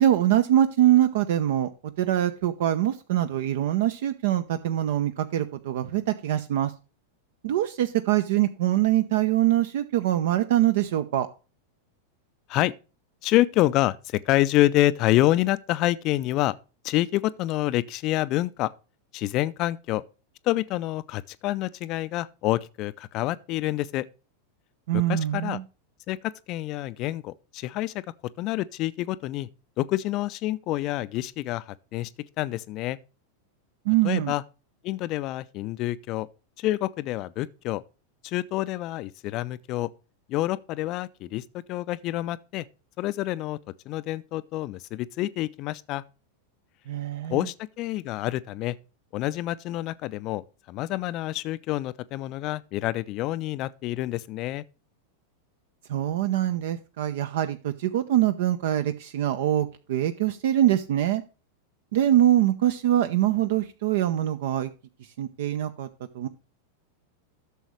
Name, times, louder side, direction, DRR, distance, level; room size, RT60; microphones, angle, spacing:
voice 1, 0.0-1.7 2.0-6.7 7.4-11.3 24.9-25.6 33.9-34.3 46.9-47.4 55.9-61.2 61.9-64.7 65.2-65.9 66.1-66.3, right 12 dB, 55° right, 0.8 m, -23 dB
voice 2, 13.2-16.5 16.8-18.7 19.1-20.0 20.4-24.1 24.9-25.6 26.1-28.0 28.4-29.5 29.8-32.1 32.4-33.0 34.0-34.4 34.8-36.3 36.6-37.8 38.2-39.9 40.3-42.7 43.0-43.6 43.9-46.0 47.3-48.8 49.1-54.6, left 16 dB, 40° left, 0.5 m, -27 dB
13.0 x 7.1 x 3.2 m
figure-of-eight pair, 90°, 0 cm